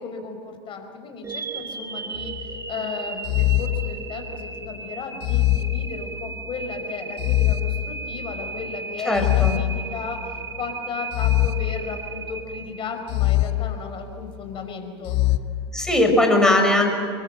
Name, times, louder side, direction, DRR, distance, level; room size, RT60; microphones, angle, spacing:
voice 1, 0.0-15.2, left 5 dB, 35° left, 5 dB, 5.1 m, -35 dB
sound 1, 1.2-13.3, right 4 dB, 20° right, 1.6 m, -35 dB
sound 2, 2.2-2.6 3.3-4.5 5.2-6.5 7.2-8.5 9.2-10.5 11.1-12.4 13.1-14.4 15.1-15.4, left 15 dB, 60° left, 1.1 m, -24 dB
voice 2, 9.0-9.6 15.7-16.9, left 1 dB, 5° left, 3 dB, 5.6 m, -19 dB
26.0 x 22.0 x 7.8 m, 2.2 s
hypercardioid pair, 105°, 15 cm